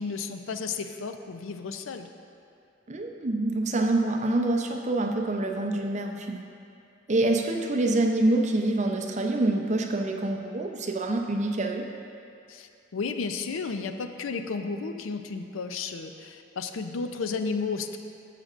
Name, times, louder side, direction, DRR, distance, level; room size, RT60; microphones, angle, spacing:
voice 1, 0.0-2.1 12.5-18.0, left 4 dB, 85° left, 7 dB, 0.5 m, -33 dB
voice 2, 2.9-6.4 7.1-11.8, right 2 dB, 35° right, 3 dB, 0.6 m, -26 dB
13.0 x 7.5 x 2.5 m, 2.5 s
head